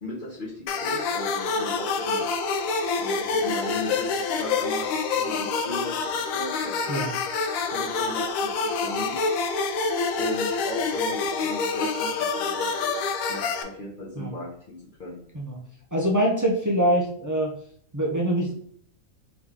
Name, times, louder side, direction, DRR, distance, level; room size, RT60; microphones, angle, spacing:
voice 1, 0.0-2.2 3.0-4.9 5.1-7.0 7.7-9.2 10.2-13.0 13.3-15.2, left 2 dB, 45° left, -7 dB, 1.0 m, -36 dB
sound 1, 0.7-13.6, left 4 dB, 85° left, 1.0 m, -27 dB
voice 2, 15.9-17.5 17.9-18.5, right 1 dB, 25° right, -2 dB, 0.4 m, -24 dB
3.7 x 3.0 x 3.6 m, 0.62 s
omnidirectional pair, 1.4 m